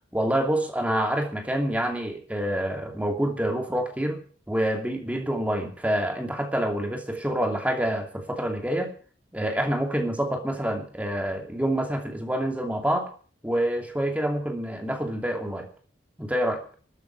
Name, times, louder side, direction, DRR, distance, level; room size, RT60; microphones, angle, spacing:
voice 1, 0.1-4.2 4.5-8.9 9.3-13.1 13.4-15.7 16.2-16.6, right 1 dB, 10° right, 3 dB, 2.7 m, -27 dB
13.5 x 8.4 x 9.6 m, 0.41 s
head